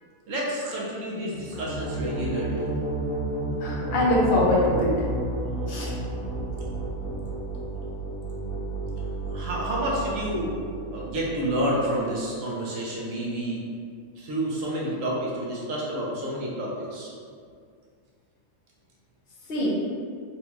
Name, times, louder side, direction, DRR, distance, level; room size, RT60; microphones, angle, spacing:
voice 1, 0.3-2.7 4.8-4.9 5.3-6.8 9.3-10.6 10.9-13.6 14.2-17.1, right 1 dB, 70° right, -4 dB, 1.1 m, -30 dB
sound 1, 1.3-12.0, right 2 dB, 75° left, 1.3 m, -32 dB
voice 2, 3.6-4.9 5.7-5.9 19.5-19.7, left 1 dB, 50° left, -5 dB, 0.8 m, -23 dB
4.0 x 2.2 x 2.9 m, 2.2 s
omnidirectional pair, 1.5 m